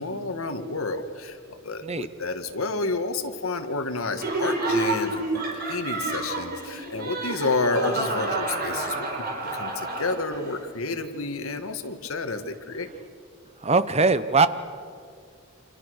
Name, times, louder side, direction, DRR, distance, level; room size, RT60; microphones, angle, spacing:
voice 1, 0.0-9.1 9.5-12.9, left 3 dB, 80° left, 8 dB, 1.9 m, -30 dB
Laughter, 4.2-10.5, right 2 dB, 45° right, 4.8 m, -29 dB
voice 2, 13.6-14.5, right 4 dB, 30° right, 13 dB, 0.9 m, -21 dB
29.5 x 26.5 x 6.6 m, 2.2 s
head